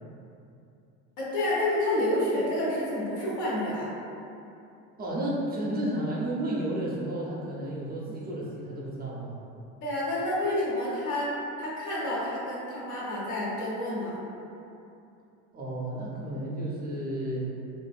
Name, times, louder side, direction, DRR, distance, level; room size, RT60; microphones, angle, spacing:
voice 1, 1.2-3.9 9.8-11.3 11.6-14.2, left 1 dB, 75° left, -7 dB, 1.0 m, -29 dB
voice 2, 5.0-9.4 15.5-17.4, right 1 dB, 25° right, -5 dB, 0.5 m, -32 dB
2.5 x 2.4 x 2.3 m, 2.7 s
supercardioid pair, 90°, 35 cm